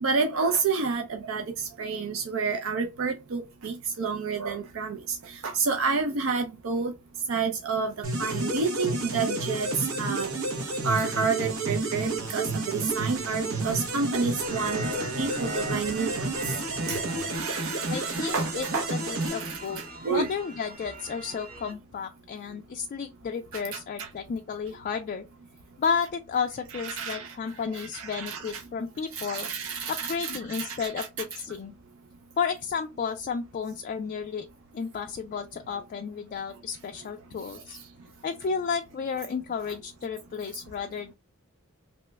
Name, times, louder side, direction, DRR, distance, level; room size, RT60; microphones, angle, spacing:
voice 1, 0.0-6.9 7.3-7.9 8.2-10.3 10.8-16.6 16.9-18.8 19.1-20.3 23.5-24.1 26.7-28.6 29.1-31.1 35.7-35.8, right 5 dB, 70° right, 0.5 m, -30 dB
sound 1, 8.0-20.1, right 2 dB, 90° right, 0.8 m, -31 dB
sound 2, 14.4-21.7, right 1 dB, 45° right, 1.0 m, -40 dB
voice 2, 17.9-19.8 20.1-25.2 25.8-29.5 29.9-31.7 32.4-34.5 34.7-37.8 38.2-41.1, left 6 dB, 40° left, 0.3 m, -32 dB
2.9 x 2.1 x 3.3 m
head